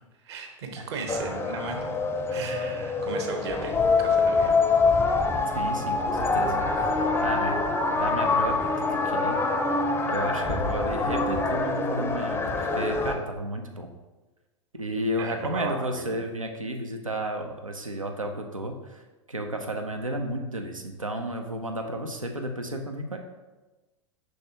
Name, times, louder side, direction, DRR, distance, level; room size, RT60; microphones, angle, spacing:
voice 1, 0.2-1.9 2.3-4.6 15.2-16.0, right 4 dB, 55° right, 3 dB, 1.1 m, -35 dB
sound 1, 1.1-13.1, left 3 dB, 15° left, 0.5 m, -25 dB
voice 2, 5.5-9.4 10.1-13.9 14.7-19.0 19.3-23.2, right 1 dB, 90° right, 4 dB, 0.7 m, -32 dB
6.4 x 5.7 x 2.9 m, 1.1 s
figure-of-eight pair, 95°, 17 cm